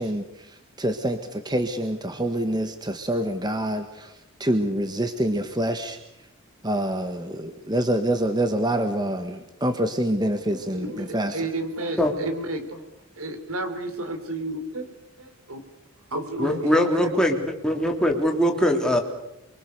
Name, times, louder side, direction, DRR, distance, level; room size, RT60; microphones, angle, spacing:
voice 1, 0.0-4.1 4.4-6.0 6.6-11.3, right 1 dB, 20° right, 7 dB, 1.5 m, -26 dB
voice 2, 10.5-12.9 13.2-15.6 16.1-17.1, right 1 dB, 85° right, 9 dB, 3.7 m, -32 dB
voice 3, 16.4-17.4 17.6-19.0, equal, 5° left, 2 dB, 3.4 m, -21 dB
28.5 x 23.5 x 6.8 m, 0.88 s
head